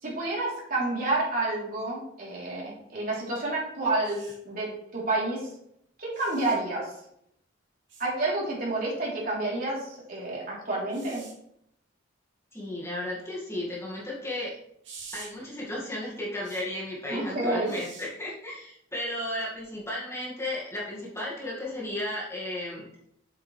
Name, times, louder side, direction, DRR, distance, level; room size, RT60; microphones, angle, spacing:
voice 1, 0.0-5.5 6.0-6.9 8.0-11.2 17.1-17.8, right 2 dB, 45° right, -5 dB, 3.5 m, -29 dB
sound 1, 4.0-4.3 6.1-6.6 7.9-8.1 10.9-11.3 14.8-15.3 16.4-16.6 17.6-18.1 19.5-19.7, right 5 dB, 65° right, 2.7 m, -46 dB
voice 2, 12.5-14.5 15.1-22.8, left 1 dB, 15° left, -5 dB, 2.1 m, -34 dB
7.7 x 7.5 x 3.4 m, 0.73 s
head